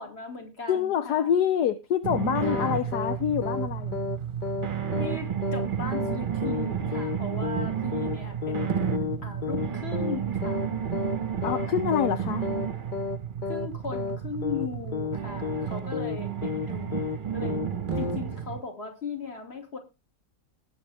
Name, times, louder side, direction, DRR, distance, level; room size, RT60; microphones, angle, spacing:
voice 1, 0.0-1.3 2.4-3.2 5.0-10.8 13.5-17.6 17.9-19.8, left 5 dB, 35° left, 4 dB, 2.6 m, -38 dB
voice 2, 0.7-4.0 11.4-12.5, left 9 dB, 70° left, 10 dB, 1.3 m, -26 dB
sound 1, 2.0-18.6, right 8 dB, 35° right, 1.0 m, -31 dB
sound 2, 2.4-2.7 2.9-3.2 3.4-3.7 3.9-4.2 4.4-4.7 4.9-5.2 5.4-5.7 5.9-6.2 6.4-6.7 6.9-7.2 7.4-7.7 7.9-8.2 8.4-8.7 8.9-9.2 9.4-9.7 9.9-10.2 10.4-10.7 10.9-11.2 11.4-11.7 11.9-12.2 12.4-12.7 12.9-13.2 13.4-13.7 13.9-14.2 14.4-14.7 14.9-15.2 15.4-15.7 15.9-16.2 16.4-16.7 16.9-17.2 17.4-17.7 17.9-18.2, left 5 dB, 55° left, 0.5 m, -32 dB
19.5 x 6.7 x 3.4 m, 0.26 s
omnidirectional pair, 1.8 m